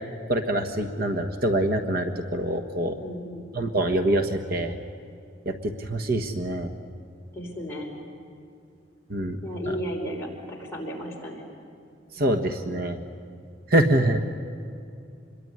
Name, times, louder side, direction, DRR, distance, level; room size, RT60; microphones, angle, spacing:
voice 1, 0.3-3.0 3.5-4.7 5.4-6.7 9.1-9.4 12.2-13.0 13.7-14.2, right 1 dB, 55° right, 6 dB, 1.4 m, -25 dB
voice 2, 3.0-3.5 7.3-8.0 9.4-11.4, equal, 15° left, -3 dB, 5.5 m, -34 dB
26.5 x 22.0 x 9.9 m, 2.5 s
head